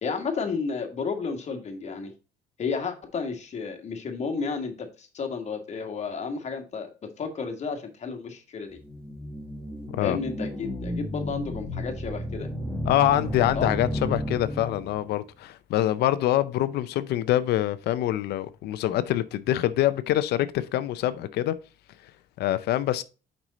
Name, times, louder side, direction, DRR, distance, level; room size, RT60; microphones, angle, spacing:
voice 1, 0.0-2.1 2.6-8.8 10.0-12.5 13.6-13.7, left 5 dB, 40° left, 1.7 m, -32 dB
sound 1, 8.8-15.1, left 1 dB, 10° left, 1.3 m, -33 dB
voice 2, 12.9-21.6 22.4-23.0, left 13 dB, 75° left, 0.5 m, -25 dB
6.0 x 5.4 x 4.0 m
cardioid pair, 110°, 17 cm